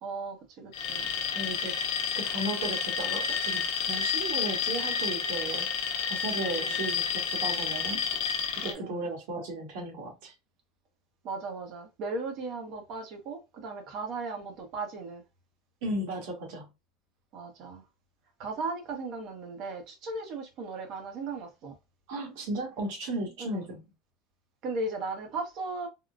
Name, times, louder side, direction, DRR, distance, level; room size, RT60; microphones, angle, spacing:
voice 1, 0.0-1.1 6.6-6.8 8.6-9.1 11.2-15.2 17.3-17.8 18.4-21.7 23.4-23.6 24.6-25.9, right 3 dB, 45° right, 0.9 m, -37 dB
Alarm, 0.7-8.7, left 7 dB, 60° left, 0.8 m, -30 dB
voice 2, 1.3-1.8 2.1-3.6 3.9-5.7 6.1-8.0 8.6-10.3 15.8-16.7 22.1-23.8, right 1 dB, 70° right, 1.4 m, -35 dB
3.7 x 2.2 x 2.3 m
supercardioid pair, 160°, 0 cm